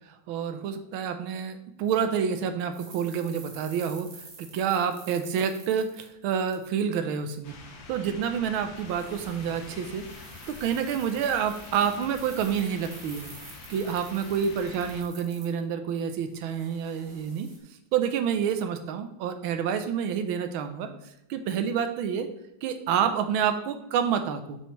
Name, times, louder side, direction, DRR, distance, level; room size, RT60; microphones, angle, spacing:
voice 1, 0.3-4.1 4.4-7.5 7.9-10.0 10.5-13.3 13.7-17.5 17.9-20.9 21.3-22.3 22.6-24.6, right 7 dB, 80° right, 8 dB, 1.6 m, -28 dB
sound 1, 2.7-6.8 7.1-7.4 8.8-15.9 16.3-17.6, right 3 dB, 40° right, 1.4 m, -49 dB
sound 2, 7.4-15.0, left 3 dB, 65° left, 1.9 m, -45 dB
7.0 x 6.8 x 3.1 m, 0.83 s
omnidirectional pair, 2.3 m